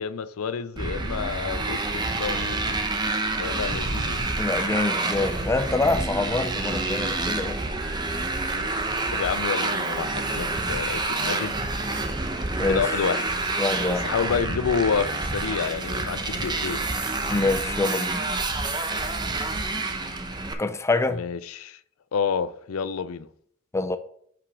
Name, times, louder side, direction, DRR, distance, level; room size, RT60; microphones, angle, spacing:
voice 1, 0.0-2.8 3.4-4.3 9.1-11.6 12.7-13.3 13.9-16.8 21.1-21.8 22.1-23.3, left 6 dB, 85° left, 0.4 m, -29 dB
Motorcycle, 0.8-20.5, right 2 dB, 20° right, 0.7 m, -28 dB
voice 2, 4.4-7.6 12.6-12.9 13.6-14.1 17.3-18.2 20.6-21.2 23.7-24.0, left 3 dB, 15° left, 0.4 m, -25 dB
5.8 x 5.0 x 4.7 m
head